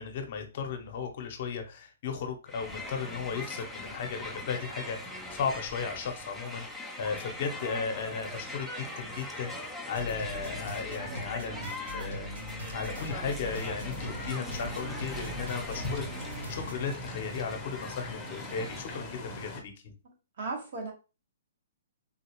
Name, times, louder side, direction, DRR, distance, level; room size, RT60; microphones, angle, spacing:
voice 1, 0.0-12.3 12.7-19.9, left 6 dB, 50° left, 0.7 m, -36 dB
Crowd, 2.5-19.2, left 1 dB, ahead, 0.5 m, -42 dB
sound 1, 10.0-16.7, right 1 dB, 80° right, 1.7 m, -40 dB
sound 2, 13.4-19.6, left 1 dB, 15° left, 0.8 m, -41 dB
voice 2, 20.0-20.9, right 3 dB, 55° right, 1.2 m, -37 dB
3.8 x 2.4 x 2.9 m
hypercardioid pair, 150°, 0 cm